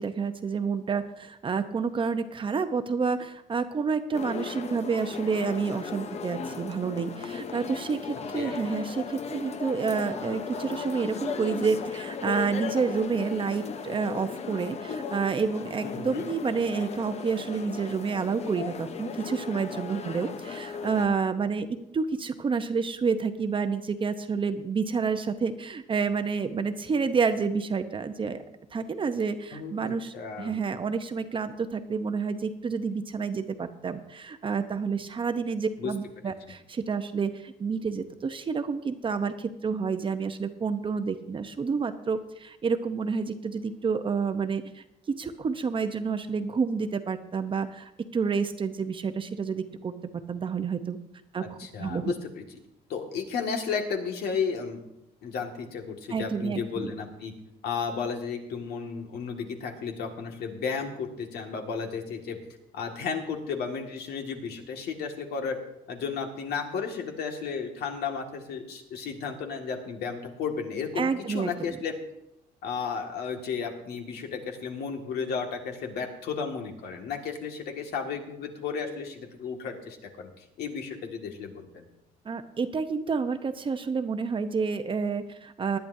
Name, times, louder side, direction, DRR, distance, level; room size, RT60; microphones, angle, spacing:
voice 1, 0.0-21.7 21.9-28.4 28.7-44.6 45.1-49.9 50.3-51.0 51.3-52.1 56.1-56.9 71.0-71.8 82.3-85.8, right 5 dB, 30° right, 9 dB, 0.8 m, -29 dB
sound 1, 4.1-21.1, left 6 dB, 40° left, 0.9 m, -36 dB
voice 2, 15.8-16.3 29.5-30.6 35.8-35.9 51.4-52.6 52.9-54.8 55.2-57.3 57.6-62.4 62.7-65.6 65.9-71.9 72.6-80.3 80.6-81.9, left 6 dB, 70° left, 3 dB, 1.9 m, -33 dB
19.0 x 10.5 x 2.7 m, 0.84 s
cardioid pair, 110°, 17 cm